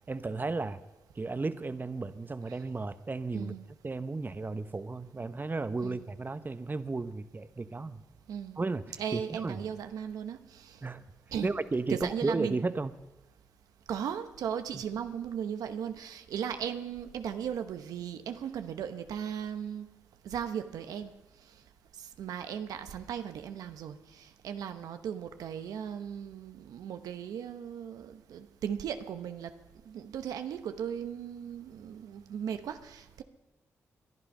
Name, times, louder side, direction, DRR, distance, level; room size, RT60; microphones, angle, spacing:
voice 1, 0.1-0.8 1.2-3.5 3.8-8.0 8.6-9.6 10.8-11.0 11.4-12.9 14.7-14.8, right 3 dB, 35° right, 12 dB, 1.0 m, -34 dB
voice 2, 3.3-3.7 5.8-6.0 8.3-8.6 9.0-10.8 11.3-11.5 11.9-12.6 13.9-19.9 20.2-21.1 22.0-29.5 29.9-33.2, right 8 dB, 85° right, 9 dB, 0.9 m, -37 dB
21.5 x 11.5 x 5.5 m, 1.1 s
supercardioid pair, 45°, 6 cm